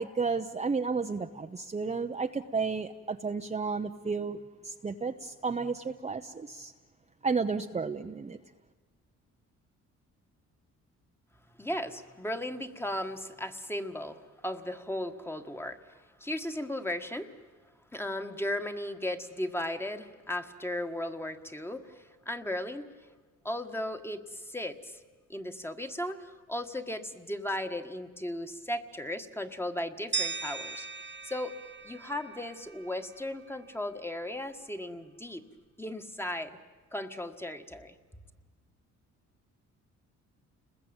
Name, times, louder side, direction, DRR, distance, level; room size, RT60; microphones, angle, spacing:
voice 1, 0.0-4.4 4.6-6.7 7.2-8.4, right 4 dB, 20° right, 5 dB, 0.9 m, -32 dB
voice 2, 11.6-15.8 16.2-17.3 17.9-22.9 23.4-25.0 25.3-31.6 31.8-35.4 35.8-36.6 36.9-37.9, left 1 dB, 10° left, 7 dB, 1.7 m, -36 dB
sound 1, 30.1-33.0, right 5 dB, 40° right, 1.5 m, -37 dB
30.0 x 21.0 x 8.9 m, 1.4 s
cardioid pair, 90°, 30 cm